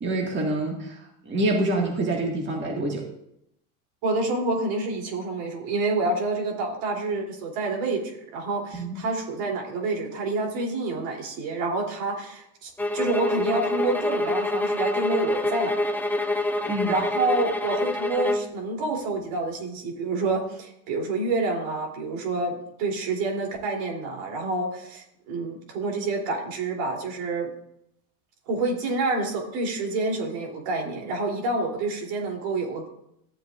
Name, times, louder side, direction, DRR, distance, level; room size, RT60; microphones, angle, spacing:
voice 1, 0.0-3.1 8.8-9.0 16.7-17.0, right 1 dB, 25° right, 0 dB, 1.9 m, -26 dB
voice 2, 4.0-15.8 16.9-27.5 28.5-32.9, right 3 dB, 60° right, 0 dB, 3.4 m, -28 dB
sound 1, 12.8-18.5, left 1 dB, 5° left, 0.6 m, -26 dB
14.0 x 7.5 x 2.5 m, 0.76 s
hypercardioid pair, 105°, 48 cm